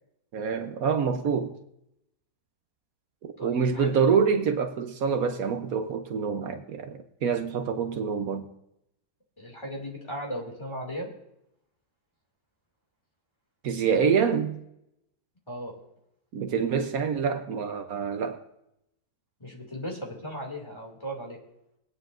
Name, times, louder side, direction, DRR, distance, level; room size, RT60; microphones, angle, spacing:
voice 1, 0.3-1.5 3.2-8.5 13.6-14.6 16.3-18.4, right 6 dB, 70° right, 1.3 m, -26 dB
voice 2, 3.4-4.0 9.4-11.1 15.5-15.7 19.4-21.4, equal, 20° left, 2.5 m, -36 dB
21.5 x 9.4 x 2.6 m
omnidirectional pair, 1.6 m